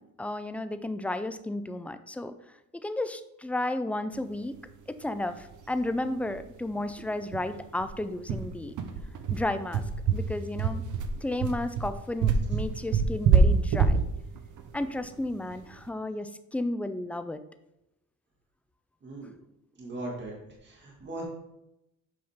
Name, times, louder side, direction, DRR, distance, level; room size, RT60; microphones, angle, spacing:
voice 1, 0.0-2.3 2.7-4.5 4.9-8.7 9.3-9.8 10.1-10.8 11.2-14.0 14.7-17.4, left 1 dB, 5° left, 10 dB, 0.3 m, -33 dB
sound 1, 5.4-5.5 5.8-5.9 6.2-6.4 6.8-6.9 7.3-15.7, right 5 dB, 60° right, 0.9 m, -26 dB
voice 2, 19.0-19.3 19.8-20.4 20.6-21.2, right 2 dB, 30° right, -2 dB, 2.1 m, -38 dB
7.8 x 5.6 x 3.5 m, 0.86 s
cardioid pair, 120°, 34 cm